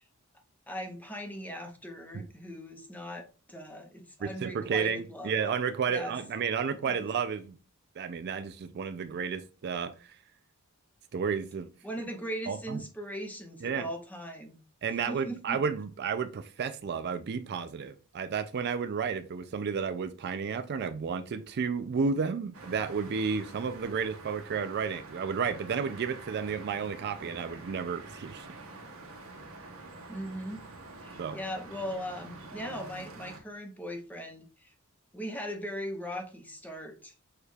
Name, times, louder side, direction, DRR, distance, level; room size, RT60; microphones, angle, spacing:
voice 1, 0.7-5.4 5.9-6.2 6.8-7.1 11.8-14.6 15.1-15.6 30.1-30.6 31.0-34.7 35.1-37.1, equal, 5° left, 0.7 m, -39 dB
voice 2, 4.2-7.6 8.0-10.1 11.1-11.7 12.5-12.8 13.6-13.9 14.8-28.5 31.2-31.4, right 6 dB, 50° right, 0.3 m, -32 dB
sound 1, 22.5-33.4, right 3 dB, 65° right, 1.0 m, -47 dB
6.3 x 2.3 x 3.3 m
head